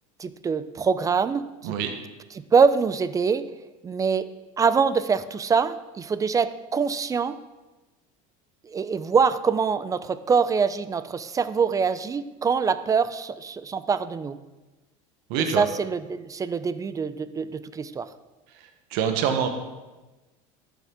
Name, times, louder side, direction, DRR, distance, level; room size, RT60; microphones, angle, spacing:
voice 1, 0.2-1.8 2.3-3.5 3.8-4.3 4.6-7.4 8.6-14.4 15.4-18.1, right 5 dB, 20° right, 14 dB, 0.4 m, -24 dB
voice 2, 15.3-15.6 18.9-19.5, right 8 dB, 70° right, 5 dB, 1.0 m, -24 dB
12.0 x 7.1 x 3.6 m, 1.1 s
supercardioid pair, 115°, 17 cm